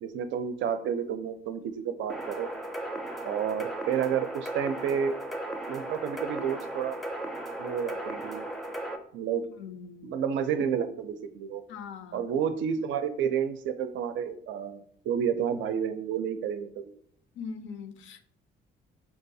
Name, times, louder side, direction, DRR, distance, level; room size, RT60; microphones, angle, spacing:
voice 1, 0.0-2.5 3.2-5.1 5.7-7.0 7.6-8.5 9.1-9.4 10.0-11.6 12.1-16.9, right 8 dB, 75° right, 9 dB, 0.4 m, -30 dB
sound 1, 2.1-9.0, right 1 dB, ahead, 0.4 m, -36 dB
voice 2, 9.6-10.2 11.7-12.3 17.4-18.3, left 6 dB, 75° left, 9 dB, 0.5 m, -41 dB
4.6 x 2.3 x 2.6 m, 0.65 s
cardioid pair, 90°, 20 cm